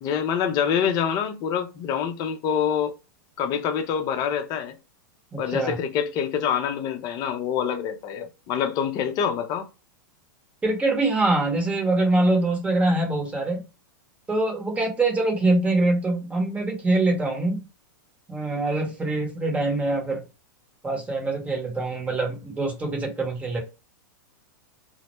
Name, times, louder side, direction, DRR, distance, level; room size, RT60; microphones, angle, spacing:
voice 1, 0.0-2.9 3.4-4.7 5.4-9.7, left 8 dB, 40° left, 0.6 m, -26 dB
voice 2, 5.3-5.8 10.6-13.6 14.3-17.6 18.3-20.2 20.8-23.6, right 2 dB, 10° right, 1.0 m, -24 dB
2.1 x 2.1 x 2.9 m
hypercardioid pair, 125°, 11 cm